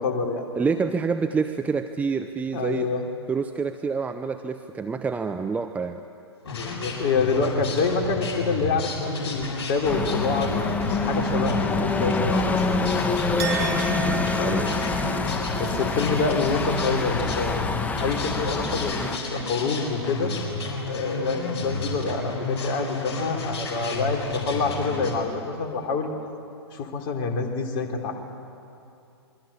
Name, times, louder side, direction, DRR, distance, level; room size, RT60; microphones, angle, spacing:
voice 1, 0.0-0.5 2.5-3.1 6.5-10.6 10.9-12.4 13.8-14.6 14.9-15.0 15.5-17.6 18.0-20.3 20.9-26.1 26.7-28.1, left 4 dB, 35° left, 2 dB, 3.6 m, -27 dB
voice 2, 0.6-2.9 3.3-6.0 14.4-14.7, right 5 dB, 10° right, 8 dB, 0.7 m, -27 dB
sound 1, 6.4-25.1, left 3 dB, 60° left, 7.3 m, -31 dB
sound 2, 9.8-19.2, left 3 dB, 10° left, 1.2 m, -26 dB
Chink clink, 13.4-18.9 19.2-20.1, right 4 dB, 65° right, 5.0 m, -36 dB
27.0 x 22.5 x 8.9 m, 2.6 s
figure-of-eight pair, 115°, 14 cm